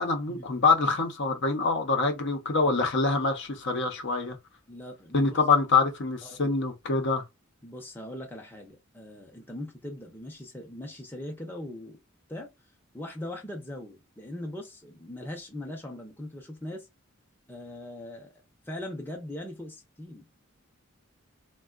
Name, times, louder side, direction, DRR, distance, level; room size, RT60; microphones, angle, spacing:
voice 1, 0.0-4.4 5.1-7.2, left 4 dB, 55° left, 0.7 m, -25 dB
voice 2, 4.7-5.4 6.2-6.6 7.6-12.0 12.3-12.5 12.9-16.9 17.5-18.3 18.7-20.2, left 1 dB, 10° left, 0.7 m, -40 dB
3.5 x 2.2 x 2.4 m
head